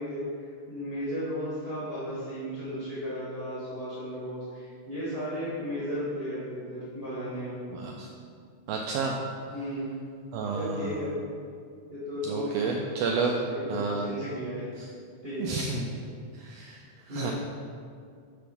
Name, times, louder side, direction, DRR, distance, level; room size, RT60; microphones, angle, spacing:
voice 1, 0.0-7.6 9.5-10.0 10.5-11.2 11.9-12.6 13.1-14.6 15.2-15.6 17.1-17.3, equal, 35° right, -10 dB, 1.0 m, -34 dB
voice 2, 7.7-8.1 8.7-9.1 10.3-10.9 12.3-13.3 13.7-14.1 15.4-15.9 16.4-16.8 17.1-17.3, right 4 dB, 80° right, 0 dB, 1.5 m, -30 dB
6.8 x 4.9 x 5.2 m, 2.2 s
omnidirectional pair, 3.4 m